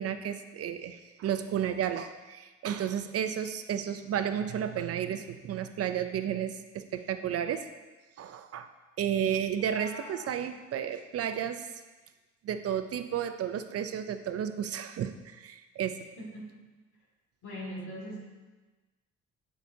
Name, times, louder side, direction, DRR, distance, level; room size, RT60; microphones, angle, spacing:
voice 1, 0.0-7.7 8.2-8.7 9.0-11.6 12.4-16.1, right 9 dB, 55° right, 9 dB, 0.4 m, -32 dB
Meow, 9.6-10.4, equal, 15° left, 0.8 m, -47 dB
voice 2, 16.2-16.5 17.4-18.2, equal, 70° left, -3 dB, 2.1 m, -40 dB
8.0 x 6.4 x 2.7 m, 1.2 s
cardioid pair, 90°, 30 cm